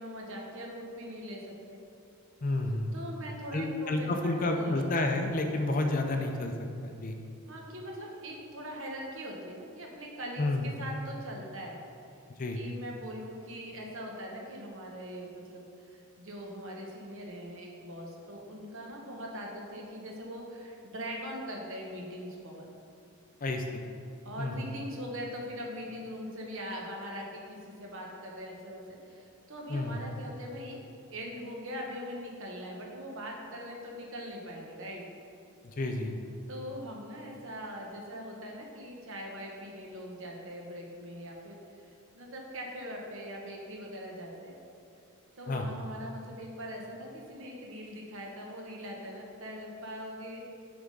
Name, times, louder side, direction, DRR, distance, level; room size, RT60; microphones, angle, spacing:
voice 1, 0.0-1.8 2.9-4.8 7.5-11.8 12.5-22.7 24.2-30.8 31.1-35.1 36.5-41.6 41.9-44.6 45.4-50.4, equal, 60° right, -1 dB, 1.0 m, -41 dB
voice 2, 2.4-2.9 3.5-6.5 6.8-7.2 10.4-10.7 12.4-12.6 23.4-23.8 24.4-24.7 29.7-30.0 35.6-36.1 45.5-45.7, left 2 dB, 35° left, 4 dB, 0.4 m, -30 dB
6.9 x 3.6 x 5.2 m, 2.6 s
head